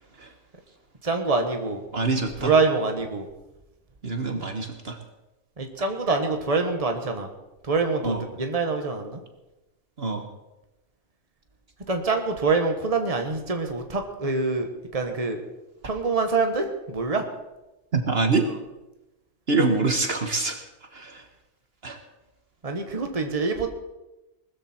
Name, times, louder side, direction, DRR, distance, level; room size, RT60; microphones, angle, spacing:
voice 1, 1.0-1.8 2.4-3.2 5.6-7.3 7.6-9.2 11.9-15.4 15.8-17.2 22.6-23.7, right 4 dB, 30° right, 5 dB, 1.6 m, -25 dB
voice 2, 1.9-2.5 4.0-5.0 8.0-8.2 10.0-10.2 17.9-18.5 19.5-20.6 20.9-21.2 21.8-22.0, right 3 dB, 55° right, 5 dB, 1.6 m, -25 dB
20.0 x 14.0 x 4.5 m, 0.99 s
omnidirectional pair, 1.2 m